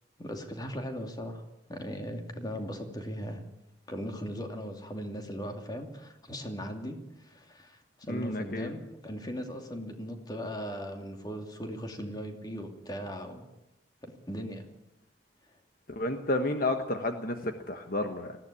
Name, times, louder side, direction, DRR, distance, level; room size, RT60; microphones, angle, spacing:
voice 1, 0.2-1.4 1.7-3.4 3.9-13.4 14.0-14.6, equal, 20° left, 4 dB, 2.6 m, -38 dB
voice 2, 8.1-8.7 15.9-18.4, left 2 dB, 50° left, 6 dB, 1.4 m, -31 dB
19.5 x 15.5 x 8.6 m, 0.95 s
head